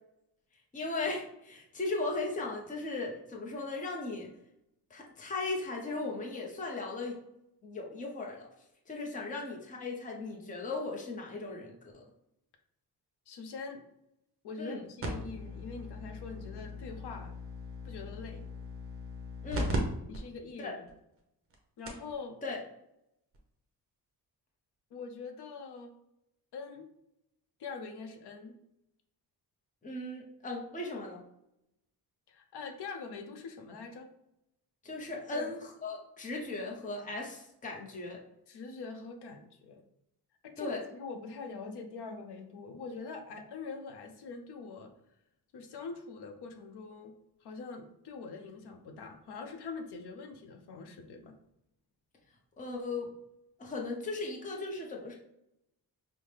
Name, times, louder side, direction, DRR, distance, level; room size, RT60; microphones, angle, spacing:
voice 1, 0.7-4.3 4.9-7.2 7.6-8.5 8.9-12.0 14.6-14.8 19.4-19.7 20.6-20.7 22.4-22.6 29.8-31.2 34.8-38.2 40.6-40.8 52.6-53.1 53.6-55.2, left 3 dB, 20° left, -1 dB, 0.6 m, -37 dB
voice 2, 13.3-13.8 14.4-17.3 17.8-18.4 20.1-20.8 21.8-22.4 24.9-25.9 26.5-26.9 27.6-28.6 32.3-34.1 35.3-35.5 38.5-39.8 40.4-44.9 45.5-47.1 47.4-51.4, left 4 dB, 75° left, 5 dB, 0.7 m, -43 dB
sound 1, 15.0-19.8 20.1-20.2 20.9-21.0 21.5-21.6 21.9-22.1 23.3-23.4, equal, 35° right, 0.7 m, -39 dB
5.6 x 2.1 x 3.2 m, 0.81 s
wide cardioid pair, 170°, 40 cm